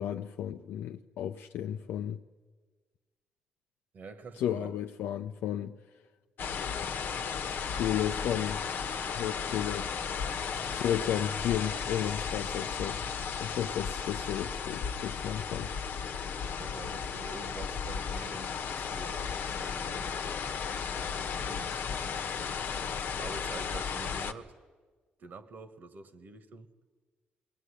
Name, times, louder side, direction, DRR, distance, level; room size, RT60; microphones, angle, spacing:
voice 1, 0.0-2.2 4.4-5.7 7.7-8.6 9.1-9.9 10.7-13.0 13.4-15.7, left 10 dB, 90° left, 0.6 m, -33 dB
voice 2, 3.9-4.7 16.6-20.4 20.9-21.8 23.2-24.5 25.2-26.7, right 4 dB, 55° right, 1.6 m, -47 dB
sound 1, 6.4-24.3, left 6 dB, 65° left, 1.1 m, -35 dB
21.5 x 17.0 x 10.0 m
cardioid pair, 105°, 4 cm